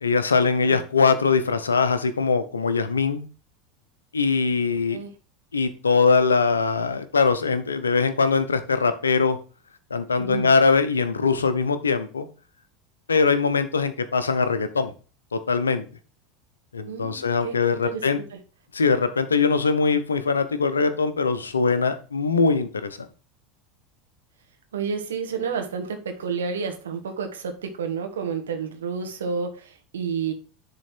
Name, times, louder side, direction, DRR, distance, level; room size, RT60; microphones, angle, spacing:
voice 1, 0.0-3.3 4.1-5.0 5.5-9.4 9.9-12.3 13.1-14.9 15.3-15.8 16.7-18.2 18.7-23.1, left 4 dB, 85° left, 11 dB, 0.8 m, -22 dB
voice 2, 10.2-10.5 16.9-17.6 17.8-18.0 18.3-18.4 24.7-30.3, right 6 dB, 75° right, 5 dB, 1.4 m, -30 dB
10.5 x 3.9 x 4.4 m, 0.36 s
figure-of-eight pair, 80°, 0 cm